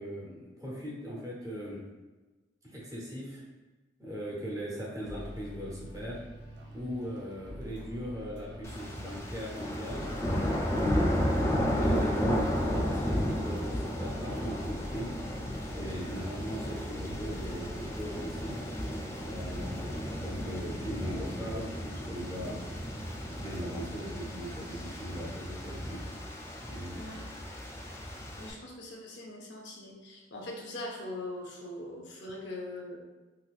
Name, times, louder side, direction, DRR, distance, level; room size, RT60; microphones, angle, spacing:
voice 1, 0.0-1.8 2.6-3.4 4.0-6.2 6.7-10.1 10.6-11.2 11.6-15.1 15.7-18.6 19.2-22.6 23.3-26.0 26.6-27.1, equal, 20° right, -5 dB, 0.7 m, -39 dB
sound 1, 5.0-23.7, equal, 70° right, 0.5 m, -47 dB
sound 2, 8.6-28.5, equal, 15° left, 0.3 m, -33 dB
voice 2, 28.4-33.0, left 1 dB, 75° left, -1 dB, 0.6 m, -41 dB
3.8 x 2.5 x 2.4 m, 1.2 s
head